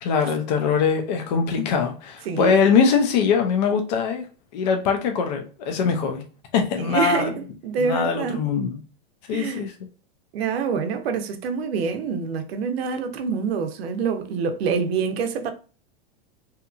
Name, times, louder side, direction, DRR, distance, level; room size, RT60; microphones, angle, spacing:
voice 1, 0.0-4.3 4.5-6.2 6.5-7.3 7.8-8.8 9.3-9.7, left 6 dB, 45° left, 0.4 m, -22 dB
voice 2, 2.3-2.6 6.8-8.4 9.3-9.6 10.3-15.5, right 6 dB, 85° right, 0.6 m, -26 dB
2.8 x 2.4 x 2.3 m
supercardioid pair, 175°, 30 cm